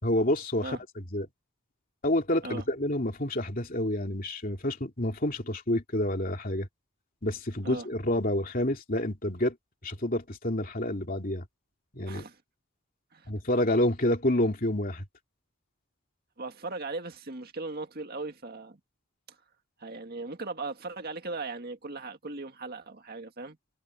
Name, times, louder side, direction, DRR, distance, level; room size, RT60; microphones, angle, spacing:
voice 1, 0.0-1.3 2.0-6.7 7.2-9.5 9.8-11.5 11.9-12.2 13.3-15.0, left 1 dB, 40° left, 2.8 m, -28 dB
voice 2, 16.4-18.8 19.8-23.6, right 3 dB, 45° right, 2.0 m, -38 dB
head